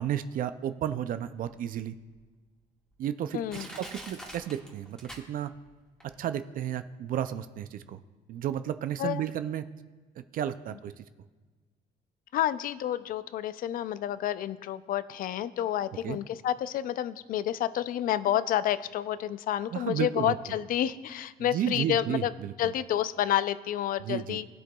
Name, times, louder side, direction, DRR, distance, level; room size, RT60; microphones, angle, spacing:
voice 1, 0.0-2.0 3.0-5.5 6.2-8.0 8.3-9.6 10.2-11.0 16.0-16.2 19.7-20.4 21.5-22.5 24.0-24.4, right 10 dB, 55° right, 11 dB, 0.4 m, -32 dB
Crushing, 2.1-2.2 2.9-3.0 3.5-5.7 6.0-6.1, equal, 5° left, 1.7 m, -44 dB
voice 2, 3.3-3.7 9.0-9.2 12.3-22.3 22.6-24.5, left 11 dB, 55° left, 15 dB, 0.4 m, -29 dB
16.5 x 7.7 x 2.3 m, 1.4 s
cardioid pair, 110°, 17 cm